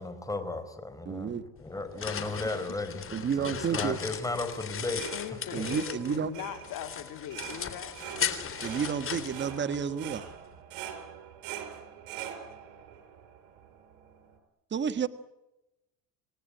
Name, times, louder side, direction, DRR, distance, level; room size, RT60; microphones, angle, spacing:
voice 1, 0.0-1.3 1.6-3.1 3.4-5.1 5.6-5.7, left 2 dB, 10° left, 4.6 m, -35 dB
voice 2, 1.0-1.4 3.1-4.0 5.5-6.3 8.6-10.3 14.7-15.1, right 7 dB, 25° right, 1.6 m, -30 dB
sound 1, 1.6-6.3 6.6-10.2, left 7 dB, 30° left, 3.5 m, -37 dB
sound 2, 4.6-14.3, right 10 dB, 75° right, 5.0 m, -44 dB
voice 3, 5.1-7.9, left 10 dB, 55° left, 2.9 m, -40 dB
Alarm, 5.7-6.2 6.7-7.2 7.7-8.2 8.7-9.2 9.7-10.2, right 2 dB, 60° right, 7.4 m, -58 dB
29.0 x 18.0 x 9.8 m
cardioid pair, 120°, 40 cm